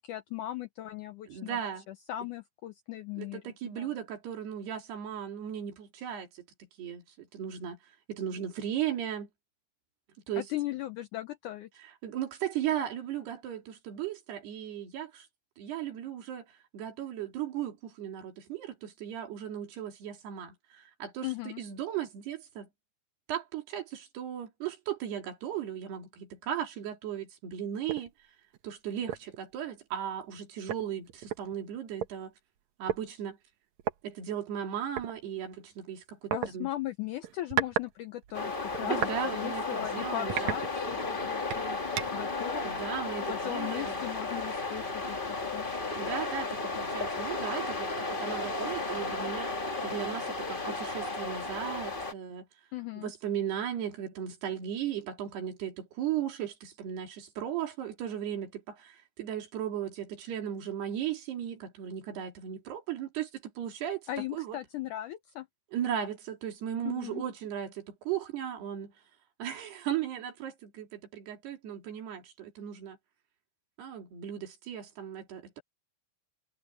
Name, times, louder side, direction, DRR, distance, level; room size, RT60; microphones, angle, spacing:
voice 1, 0.0-4.0 10.4-11.7 21.2-21.6 36.3-39.0 39.3-41.8 42.1-42.9 43.3-45.6 52.7-53.1 64.1-65.5 66.9-67.2, left 14 dB, 90° left, 1.8 m, -38 dB
voice 2, 1.3-1.8 3.2-6.3 6.8-7.0 7.3-7.8 8.1-9.3 10.3-10.5 12.0-15.1 15.6-16.4 16.7-20.5 21.0-21.3 21.6-22.7 23.3-28.1 28.6-32.3 32.8-33.4 34.0-36.7 38.8-40.5 42.6-43.9 46.0-47.9 48.2-49.5 49.8-52.4 53.0-58.6 59.2-63.3 63.6-64.0 64.3-64.6 65.7-68.9 69.4-70.9 71.1-73.0 73.8-75.4, right 10 dB, 90° right, 5.0 m, -36 dB
sound 1, 27.9-28.1 28.5-28.7 29.1-29.4 30.3-30.4 30.7-32.1 32.9-33.0 33.8-34.0 35.0-35.1 36.3-36.5 37.2-37.9 38.2-39.2 39.7-39.8 40.3-41.1 41.5-42.3, right 10 dB, 65° right, 1.9 m, -34 dB
sound 2, 38.3-52.1, left 3 dB, 60° left, 0.5 m, -34 dB
omnidirectional pair, 4.5 m